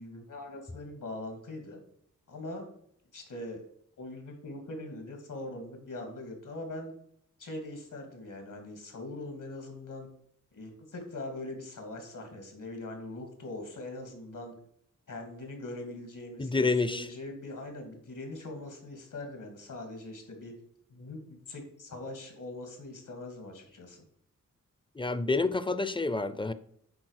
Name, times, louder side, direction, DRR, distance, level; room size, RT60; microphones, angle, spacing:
voice 1, 0.0-1.8 2.3-2.7 3.1-3.6 4.0-6.9 7.4-10.1 10.5-14.5 15.1-20.5 20.9-24.0, left 2 dB, 80° left, 2.4 m, -42 dB
voice 2, 16.4-17.1 25.0-26.5, left 3 dB, 15° left, 0.5 m, -28 dB
8.7 x 4.0 x 6.5 m
wide cardioid pair, 140°, 31 cm